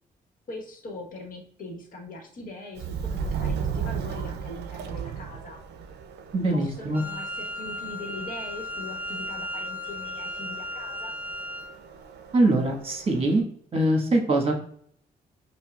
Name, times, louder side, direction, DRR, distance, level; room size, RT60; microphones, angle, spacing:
voice 1, 0.5-5.6 6.5-11.2, left 1 dB, 55° left, 2 dB, 1.2 m, -41 dB
Subway metro underground, 2.8-13.4, right 6 dB, 90° right, 0.4 m, -36 dB
voice 2, 6.3-7.0 12.3-13.4 13.7-14.5, right 2 dB, 35° right, 1 dB, 1.3 m, -22 dB
Wind instrument woodwind instrument, 6.9-11.8, left 1 dB, 10° right, 0.5 m, -35 dB
5.4 x 2.3 x 2.3 m, 0.62 s
cardioid pair, 75°, 17 cm